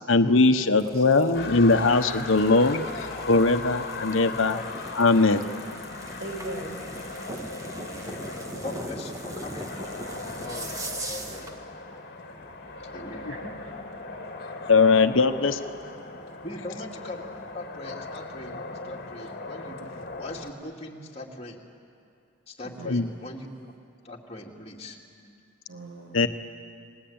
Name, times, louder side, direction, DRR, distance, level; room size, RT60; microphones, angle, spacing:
voice 1, 0.1-2.8 3.3-4.6 5.0-5.5 13.3-13.4 14.7-15.6 22.8-23.1 26.1-26.3, left 3 dB, 85° left, 8 dB, 1.2 m, -20 dB
sound 1, 0.6-11.6, right 1 dB, 15° right, 1.6 m, -41 dB
sound 2, 1.3-20.5, left 3 dB, 50° left, 2.0 m, -38 dB
voice 2, 6.2-6.9 7.2-7.4 12.3-12.5 13.2-13.5 22.6-23.0 25.7-26.2, right 2 dB, 70° right, 1 dB, 5.9 m, -40 dB
voice 3, 8.6-9.7 10.3-10.8 11.1-11.5 12.8-13.2 15.6-15.7 16.4-17.2 17.5-21.6 22.5-23.7 24.0-25.4, left 2 dB, 30° left, -1 dB, 2.6 m, -41 dB
29.5 x 19.5 x 8.9 m, 2.5 s
head